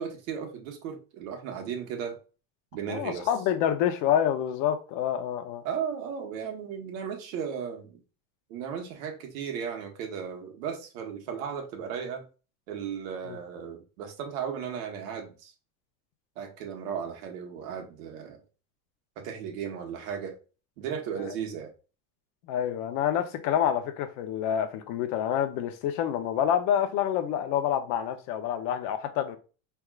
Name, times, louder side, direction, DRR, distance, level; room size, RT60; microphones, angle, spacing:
voice 1, 0.0-2.2 2.7-3.3 5.6-8.0 8.5-12.3 12.7-15.5 16.4-18.4 19.2-20.3 20.8-21.7, right 7 dB, 85° right, 1.4 m, -35 dB
voice 2, 2.9-5.6 13.2-13.4 22.4-29.4, left 10 dB, 50° left, 0.7 m, -27 dB
4.7 x 3.5 x 2.4 m
cardioid pair, 160°, 40 cm